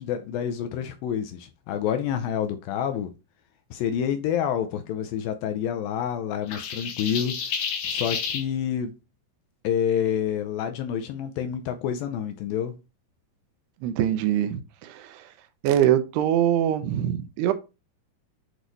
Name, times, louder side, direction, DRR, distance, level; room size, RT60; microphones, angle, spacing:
voice 1, 0.0-3.1 3.7-7.5 7.8-8.9 9.6-12.8, left 9 dB, 80° left, 2.2 m, -28 dB
sound 1, 6.5-8.4, left 6 dB, 65° left, 2.3 m, -30 dB
voice 2, 13.8-15.3 15.6-17.5, right 11 dB, 85° right, 2.8 m, -23 dB
8.1 x 3.1 x 3.9 m
omnidirectional pair, 4.6 m